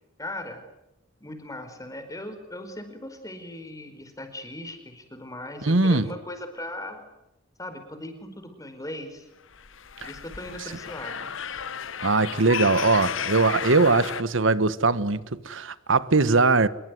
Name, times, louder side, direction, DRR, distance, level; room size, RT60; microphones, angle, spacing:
voice 1, 0.2-0.6 1.2-7.0 7.6-9.3 10.0-11.3, left 1 dB, 15° left, 4.8 m, -38 dB
voice 2, 5.6-6.1 12.0-16.7, right 3 dB, 70° right, 1.3 m, -21 dB
sound 1, 9.5-14.2, left 7 dB, 75° left, 1.0 m, -33 dB
26.5 x 22.5 x 9.6 m
head